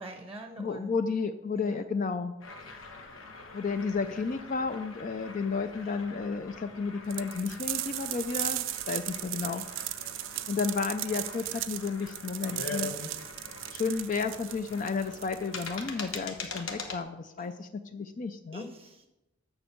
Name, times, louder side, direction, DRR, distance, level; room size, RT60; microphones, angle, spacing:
voice 1, 0.0-0.9 1.5-1.9 17.4-17.5 18.5-19.1, right 1 dB, 10° right, 5 dB, 0.7 m, -44 dB
voice 2, 0.6-2.3 3.5-10.1 10.5-13.2 13.7-18.7, left 4 dB, 40° left, 9 dB, 0.4 m, -32 dB
sound 1, 2.4-17.0, left 4 dB, 90° left, 1.1 m, -44 dB
sound 2, 7.1-16.5, right 15 dB, 65° right, 0.4 m, -37 dB
7.1 x 6.3 x 6.7 m, 0.97 s
head